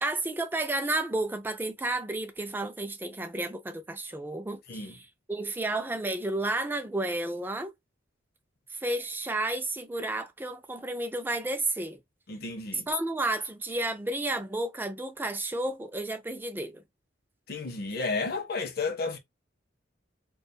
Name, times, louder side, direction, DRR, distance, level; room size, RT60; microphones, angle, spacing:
voice 1, 0.0-7.7 8.7-12.0 12.9-16.8, right 2 dB, 10° right, 0.3 m, -32 dB
voice 2, 4.7-5.0 12.3-12.9 17.5-19.2, left 3 dB, 55° left, 0.6 m, -32 dB
2.3 x 2.2 x 2.5 m
head